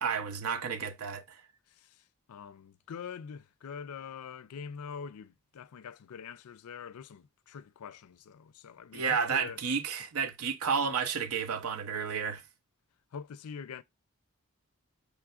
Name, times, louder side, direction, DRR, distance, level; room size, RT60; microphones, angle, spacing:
voice 1, 0.0-1.4 8.9-12.4, right 6 dB, 80° right, 0.6 m, -31 dB
voice 2, 1.7-9.6 13.1-13.8, left 6 dB, 85° left, 0.4 m, -44 dB
6.0 x 3.2 x 2.3 m
head